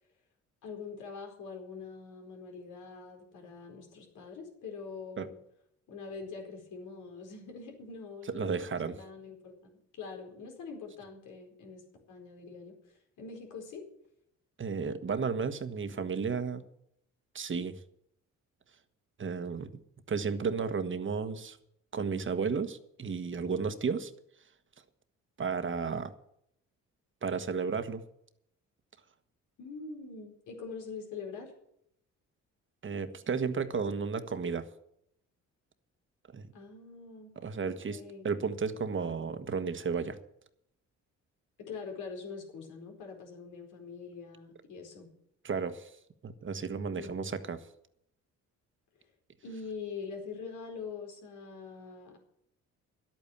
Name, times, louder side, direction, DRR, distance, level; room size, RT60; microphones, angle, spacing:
voice 1, 0.6-5.4 5.9-13.8 29.6-31.5 36.5-37.4 37.7-38.3 41.6-45.1 46.9-47.3 49.4-52.2, left 5 dB, 80° left, 2 dB, 4.6 m, -44 dB
voice 2, 8.3-9.0 14.6-16.6 17.3-17.8 19.2-19.8 20.1-21.6 21.9-24.1 25.4-26.1 27.2-28.0 32.8-34.6 36.3-36.5 37.4-40.2 45.4-45.9 46.2-47.6, right 5 dB, 40° right, 10 dB, 1.4 m, -33 dB
11.5 x 8.8 x 8.6 m, 0.74 s
cardioid pair, 90°, 30 cm